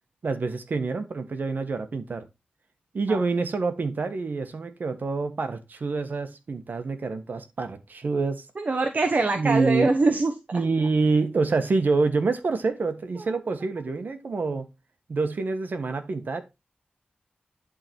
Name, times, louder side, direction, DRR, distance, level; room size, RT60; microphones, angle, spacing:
voice 1, 0.2-2.2 2.9-8.5 9.3-9.9 10.5-14.7 15.1-16.4, right 3 dB, 70° right, 1.3 m, -26 dB
voice 2, 8.6-10.3, right 3 dB, 50° right, 1.0 m, -23 dB
11.0 x 3.9 x 4.5 m
wide cardioid pair, 85°, 3 cm